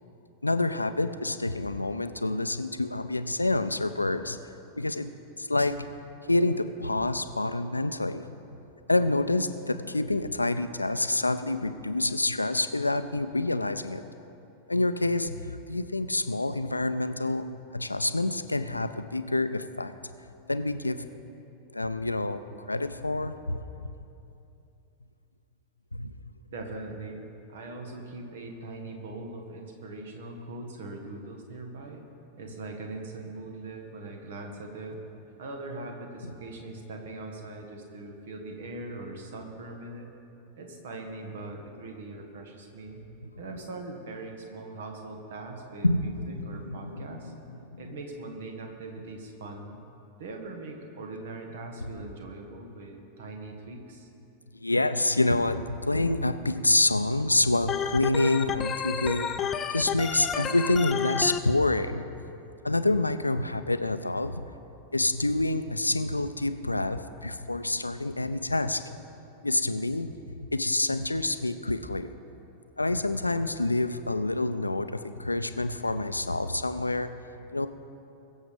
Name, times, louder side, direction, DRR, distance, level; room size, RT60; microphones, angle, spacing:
voice 1, 0.4-4.4 4.8-5.1 5.4-5.9 6.3-8.4 8.9-14.0 14.7-17.4 17.7-19.9 20.5-21.1 21.7-22.4 22.7-23.9 25.9-26.3 45.8-47.3 47.7-47.8 54.5-62.0 62.6-64.5 64.9-69.0 69.4-70.1 70.4-72.1 72.8-77.1 77.5-77.7, left 2 dB, 85° left, 11 dB, 0.5 m, -27 dB
voice 2, 26.5-27.2 27.5-32.0 32.4-35.0 35.4-40.1 40.6-43.0 43.4-47.3 47.8-49.8 50.2-54.1, right 2 dB, 60° right, 2 dB, 1.8 m, -41 dB
Organ, 57.7-61.4, left 7 dB, 25° left, 0.6 m, -31 dB
22.0 x 7.3 x 5.0 m, 2.8 s
figure-of-eight pair, 90°, 0 cm